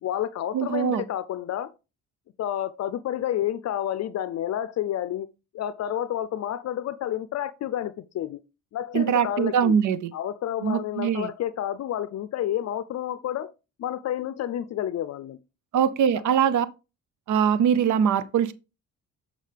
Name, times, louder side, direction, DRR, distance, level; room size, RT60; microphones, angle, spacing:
voice 1, 0.0-1.7 2.4-5.3 5.5-8.4 8.7-9.7 10.1-13.5 13.8-15.4 16.1-16.2, left 11 dB, 60° left, 0.5 m, -30 dB
voice 2, 0.5-1.0 8.9-10.1 10.6-11.3 15.7-16.7 17.3-18.5, right 8 dB, 75° right, 0.6 m, -22 dB
9.9 x 5.2 x 3.3 m
cardioid pair, 90°, 30 cm